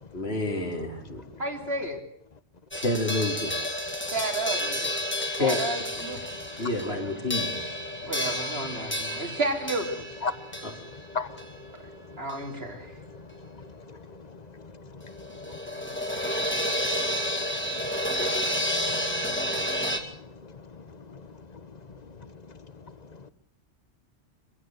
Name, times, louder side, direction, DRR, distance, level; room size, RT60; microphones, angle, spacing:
voice 1, 0.1-1.2 2.7-3.5 5.4-5.6 6.6-7.6, left 2 dB, 65° left, 3.9 m, -28 dB
voice 2, 1.4-2.0 4.0-6.2 6.8-7.2 8.1-10.0 12.2-12.9, right 2 dB, 65° right, 3.5 m, -32 dB
sound 1, 2.7-12.6 12.9-13.0 15.0-20.0, left 1 dB, 10° left, 2.4 m, -31 dB
voice 3, 6.3-6.6 8.0-8.1 9.1-9.2 10.2-12.3 12.8-23.3, left 4 dB, 40° left, 1.3 m, -42 dB
25.0 x 16.0 x 7.8 m
omnidirectional pair, 1.1 m